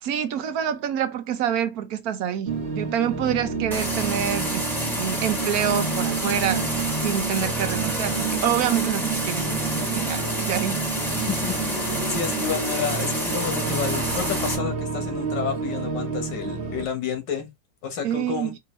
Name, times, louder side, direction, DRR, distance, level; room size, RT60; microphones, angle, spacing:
voice 1, 0.0-4.7 5.0-6.7 7.0-10.8 18.0-18.6, right 9 dB, 65° right, 1.1 m, -27 dB
sound 1, 2.5-16.8, right 4 dB, 45° right, 1.1 m, -29 dB
sound 2, 3.7-14.6, equal, ahead, 1.3 m, -29 dB
voice 2, 11.1-17.5 17.8-18.5, left 7 dB, 75° left, 1.8 m, -30 dB
5.1 x 2.8 x 3.1 m
omnidirectional pair, 1.9 m